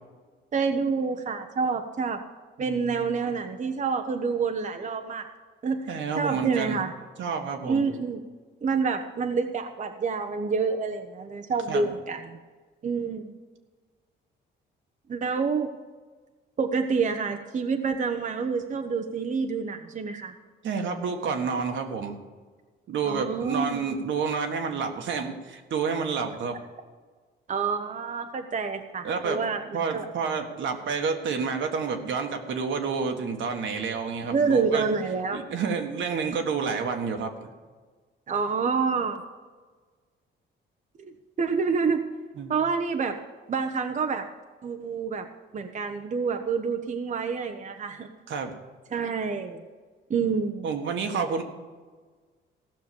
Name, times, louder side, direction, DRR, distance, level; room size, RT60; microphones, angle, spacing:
voice 1, 0.5-2.2 2.6-5.3 5.6-6.9 7.6-8.2 8.6-12.4 12.8-13.3 15.1-15.7 16.6-20.3 23.1-23.8 27.5-30.0 34.3-35.4 38.3-39.2 41.0-41.1 41.4-42.0 42.5-43.2 43.5-44.3 44.6-45.3 45.5-48.1 48.9-49.6 50.1-50.7, right 5 dB, 40° right, 5 dB, 0.9 m, -28 dB
voice 2, 2.6-3.1 5.9-6.8 7.2-7.9 11.7-11.9 20.6-22.2 22.9-26.6 29.0-29.4 29.7-34.9 35.3-37.5 42.4-42.5 48.3-48.5 50.6-51.4, right 5 dB, 70° right, 4 dB, 1.6 m, -29 dB
15.5 x 6.2 x 7.0 m, 1.4 s
cardioid pair, 90°, 20 cm